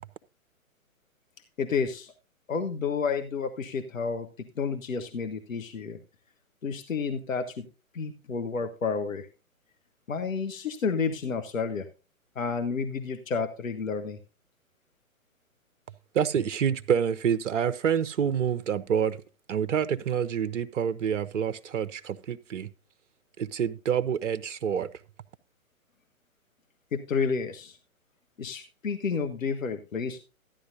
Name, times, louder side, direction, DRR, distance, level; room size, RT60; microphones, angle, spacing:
voice 1, 1.6-2.1 2.5-6.0 6.6-7.7 7.9-9.3 10.1-11.9 12.3-14.2 26.9-27.8 28.4-30.2, left 5 dB, 70° left, 1.3 m, -30 dB
voice 2, 16.1-19.2 19.5-22.7 23.4-24.9, right 8 dB, 60° right, 0.8 m, -27 dB
14.0 x 10.5 x 2.7 m
figure-of-eight pair, 130°, 42 cm